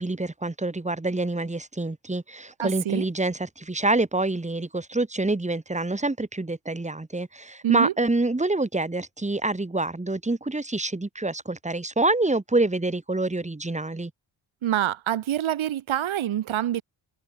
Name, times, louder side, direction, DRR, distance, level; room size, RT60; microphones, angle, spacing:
voice 1, 0.0-14.1, right 2 dB, 15° right, 5.1 m, -26 dB
voice 2, 2.6-3.1 7.6-7.9 14.6-16.8, right 11 dB, 80° right, 4.2 m, -26 dB
cardioid pair, 90°, 47 cm